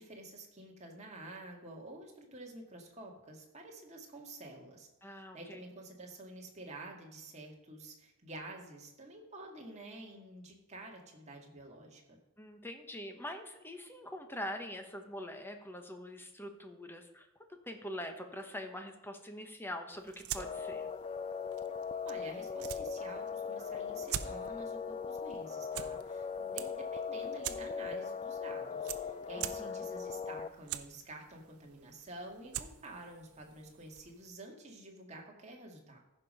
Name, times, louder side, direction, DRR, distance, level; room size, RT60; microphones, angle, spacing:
voice 1, 0.0-4.9 5.3-12.2 22.0-36.0, right 2 dB, 30° right, 0 dB, 1.9 m, -49 dB
voice 2, 5.0-5.7 12.4-17.3 17.7-20.9 29.4-29.8, left 1 dB, 10° left, 5 dB, 1.0 m, -44 dB
sound 1, 19.9-34.3, right 11 dB, 75° right, 0.6 m, -46 dB
sound 2, 20.4-30.5, left 6 dB, 30° left, 0.4 m, -39 dB
14.5 x 5.3 x 5.4 m, 0.93 s
head